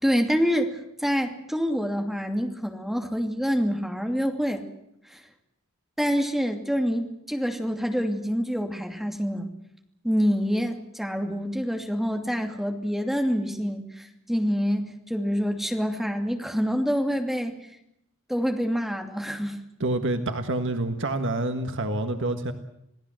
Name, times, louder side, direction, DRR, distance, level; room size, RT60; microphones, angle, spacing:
voice 1, 0.0-4.6 5.1-5.2 6.0-9.5 10.0-17.5 18.3-19.6, equal, ahead, 4 dB, 2.6 m, -26 dB
voice 2, 19.8-22.5, right 2 dB, 60° right, 7 dB, 1.6 m, -27 dB
27.5 x 18.0 x 7.7 m, 0.80 s
head